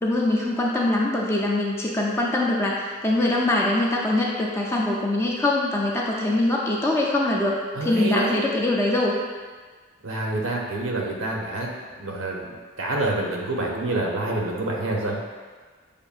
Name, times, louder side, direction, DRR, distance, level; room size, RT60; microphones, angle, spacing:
voice 1, 0.0-9.1, left 2 dB, 15° left, -3 dB, 0.4 m, -23 dB
voice 2, 7.7-8.4 10.0-11.7 12.0-15.2, right 2 dB, 85° right, -1 dB, 0.7 m, -27 dB
6.7 x 2.6 x 2.4 m, 1.5 s
head